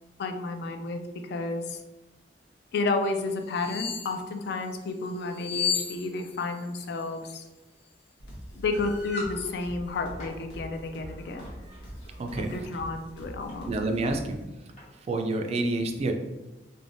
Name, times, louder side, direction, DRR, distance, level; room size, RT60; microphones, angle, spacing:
voice 1, 0.2-1.8 2.7-7.4 8.5-11.5 12.4-13.7, left 3 dB, 65° left, 6 dB, 0.3 m, -31 dB
sound 1, 3.5-4.2 5.3-6.6 6.8-7.0, left 7 dB, 20° left, 1.0 m, -31 dB
sound 2, 8.2-14.4, equal, 90° left, 1.1 m, -44 dB
sound 3, 8.7-9.4 10.0-10.4 11.4-11.6 12.3-12.6 13.5-13.6 13.9-14.0 14.8-14.9, left 1 dB, 40° left, 1.0 m, -40 dB
voice 2, 12.2-12.5 13.7-14.4 15.1-16.1, right 2 dB, 35° right, 4 dB, 0.3 m, -28 dB
3.3 x 2.1 x 2.5 m, 1.1 s
head